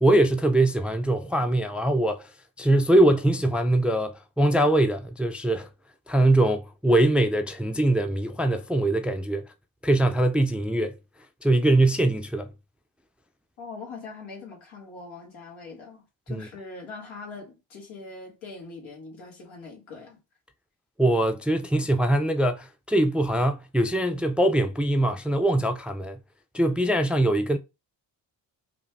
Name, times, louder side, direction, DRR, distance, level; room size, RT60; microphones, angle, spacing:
voice 1, 0.0-2.3 2.6-5.7 6.1-9.5 9.8-11.0 11.4-12.5 16.3-16.5 21.0-26.2 26.5-27.6, right 1 dB, ahead, 0.4 m, -22 dB
voice 2, 13.6-20.2, left 4 dB, 80° left, 1.8 m, -42 dB
4.9 x 2.4 x 3.4 m
supercardioid pair, 50°, 47 cm